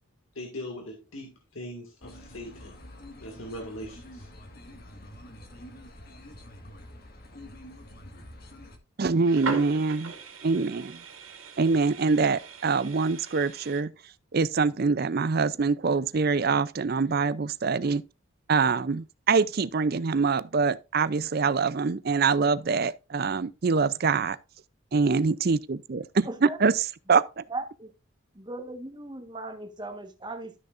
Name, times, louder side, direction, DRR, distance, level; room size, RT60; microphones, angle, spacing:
voice 1, 0.4-2.8 3.2-4.3, left 1 dB, 70° left, 2.0 m, -40 dB
sound 1, 2.0-8.8, left 1 dB, 45° left, 1.6 m, -47 dB
voice 2, 9.0-10.1 10.4-11.0 11.6-13.9 14.3-18.0 18.5-24.4 24.9-27.4, right 4 dB, 45° right, 0.5 m, -24 dB
sound 2, 9.1-13.8, right 4 dB, 75° right, 2.1 m, -39 dB
voice 3, 26.2-26.6 27.5-27.9 28.3-30.6, right 2 dB, 20° right, 1.3 m, -37 dB
12.5 x 6.5 x 2.5 m
head